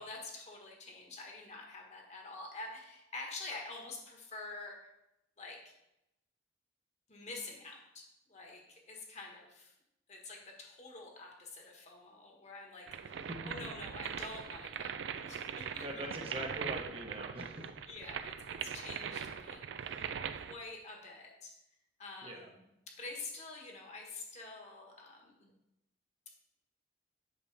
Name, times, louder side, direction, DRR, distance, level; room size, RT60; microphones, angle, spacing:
voice 1, 0.0-4.8 5.4-5.7 7.1-9.7 10.1-16.1 17.9-20.1 20.4-21.5 22.0-25.5, left 3 dB, 40° left, 1 dB, 1.4 m, -47 dB
sound 1, 12.9-20.5, right 7 dB, 75° right, 0.4 m, -41 dB
voice 2, 15.8-17.7 22.2-22.5, right 1 dB, 30° right, 1 dB, 0.9 m, -42 dB
8.1 x 6.0 x 3.4 m, 0.87 s
head